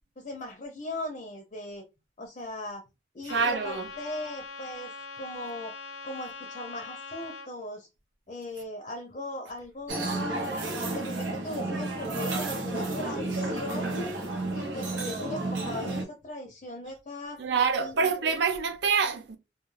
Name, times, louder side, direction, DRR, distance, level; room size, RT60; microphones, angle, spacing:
voice 1, 0.2-1.8 2.2-2.8 3.1-5.7 6.0-7.9 8.3-10.4 10.9-14.0 14.5-17.4 17.8-18.3, left 1 dB, 35° left, 0.5 m, -39 dB
Trumpet, 3.3-7.5, left 4 dB, 85° left, 0.5 m, -42 dB
voice 2, 3.3-3.9 17.4-19.4, right 5 dB, 65° right, 0.4 m, -26 dB
sound 1, 9.9-16.0, right 2 dB, 80° right, 0.8 m, -31 dB
2.2 x 2.2 x 3.1 m
head